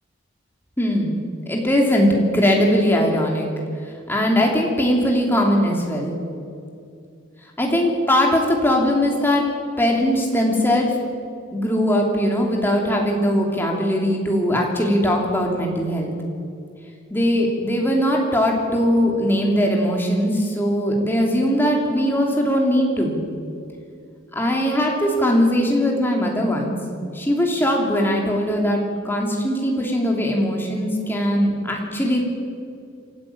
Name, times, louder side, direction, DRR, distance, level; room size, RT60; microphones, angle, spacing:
voice 1, 0.8-3.5 4.1-6.2 7.6-9.4 9.8-10.9 11.5-16.1 17.1-23.2 24.3-26.8 27.1-32.2, equal, 10° left, 0 dB, 3.2 m, -20 dB
27.0 x 12.5 x 8.8 m, 2.4 s
head